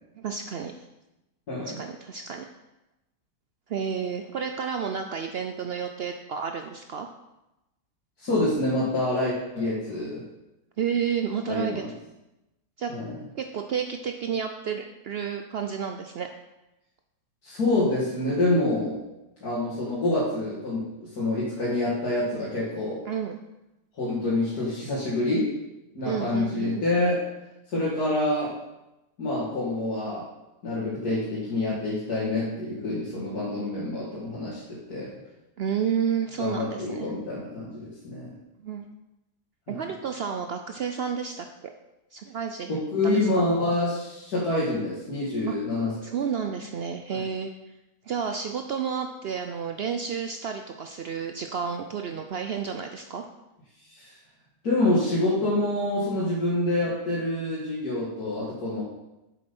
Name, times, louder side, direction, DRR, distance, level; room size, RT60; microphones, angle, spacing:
voice 1, 0.2-0.7 1.6-2.5 3.7-7.1 10.8-11.8 12.8-12.9 13.3-16.3 23.1-23.4 26.0-26.8 35.6-37.1 38.6-38.9 39.7-41.7 42.1-42.8 43.4-43.5 45.5-45.6 46.0-47.5 48.1-53.3, right 7 dB, 85° right, 5 dB, 0.5 m, -31 dB
voice 2, 1.5-1.8 8.2-10.2 11.5-11.9 12.9-13.1 17.4-19.0 19.4-23.0 24.0-25.5 25.9-27.3 27.7-28.6 29.2-30.3 30.6-35.1 36.4-38.3 39.7-39.8 42.7-46.1 47.1-47.2 53.9-54.1 54.6-58.8, left 2 dB, 65° left, -8 dB, 2.6 m, -27 dB
7.8 x 7.6 x 5.4 m, 0.96 s
omnidirectional pair, 1.8 m